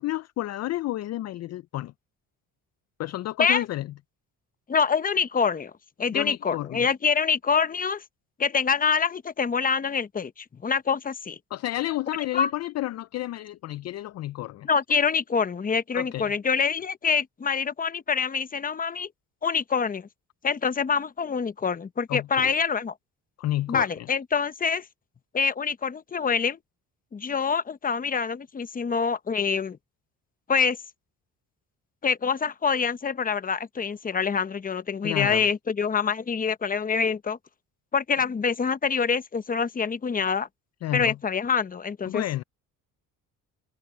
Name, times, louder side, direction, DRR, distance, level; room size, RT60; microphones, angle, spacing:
voice 1, 0.0-1.9 3.0-3.9 6.1-6.9 11.5-14.7 15.9-16.3 22.1-22.5 23.4-24.1 35.0-35.5 40.8-41.2 42.1-42.4, left 15 dB, 50° left, 0.4 m, -31 dB
voice 2, 4.7-5.7 6.0-8.0 8.4-11.4 12.3-12.5 14.6-19.1 19.4-20.1 20.4-22.9 23.7-24.8 25.3-26.6 27.1-29.8 30.5-30.8 32.0-37.4 37.9-40.5 40.9-42.4, left 6 dB, 25° left, 0.9 m, -25 dB
cardioid pair, 105°, 34 cm